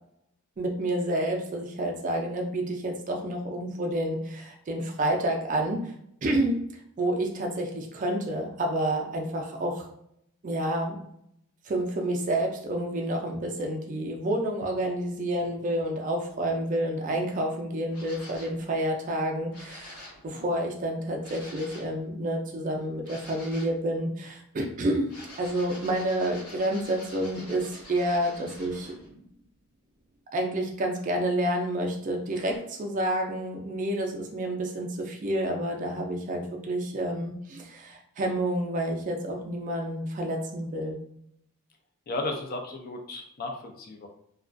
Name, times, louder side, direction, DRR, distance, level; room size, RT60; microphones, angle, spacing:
voice 1, 0.6-5.9 6.2-6.6 7.0-9.9 10.4-11.0 11.7-25.1 25.4-29.1 30.3-41.0, right 1 dB, 35° right, 1 dB, 0.3 m, -29 dB
sound 1, 17.9-18.6 19.5-20.2 21.2-21.9 23.0-23.8 25.0-29.1 32.5-32.6, left 1 dB, 90° left, 1.1 m, -46 dB
voice 2, 42.1-44.1, left 2 dB, 40° left, 3 dB, 0.4 m, -34 dB
2.3 x 2.2 x 2.5 m, 0.73 s
head